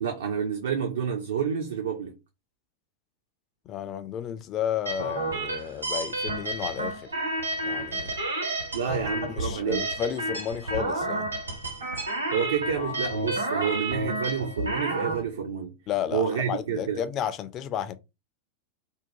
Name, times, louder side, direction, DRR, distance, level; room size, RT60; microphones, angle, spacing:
voice 1, 0.0-2.1 8.7-9.9 12.3-15.8 16.1-17.0, right 7 dB, 65° right, 0.4 m, -29 dB
voice 2, 3.7-7.1 7.6-8.1 9.3-11.3 15.9-17.9, left 9 dB, 35° left, 0.3 m, -32 dB
sound 1, 4.9-15.2, right 2 dB, 85° right, 1.1 m, -30 dB
2.7 x 2.1 x 2.8 m
figure-of-eight pair, 90°, 0 cm